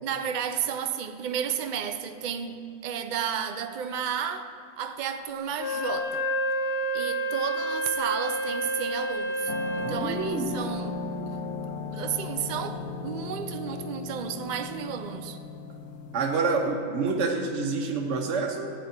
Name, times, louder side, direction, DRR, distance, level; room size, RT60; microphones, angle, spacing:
voice 1, 0.0-4.5 4.8-6.2 6.9-11.0 11.9-15.4, right 8 dB, 90° right, 8 dB, 0.4 m, -32 dB
Wind instrument woodwind instrument, 5.5-10.0, equal, 45° left, 2.2 m, -29 dB
sound 1, 9.5-16.6, left 4 dB, 70° left, 0.9 m, -36 dB
voice 2, 9.8-10.6 16.1-18.7, right 4 dB, 55° right, 1 dB, 1.1 m, -28 dB
15.0 x 9.4 x 4.4 m, 2.4 s
omnidirectional pair, 1.5 m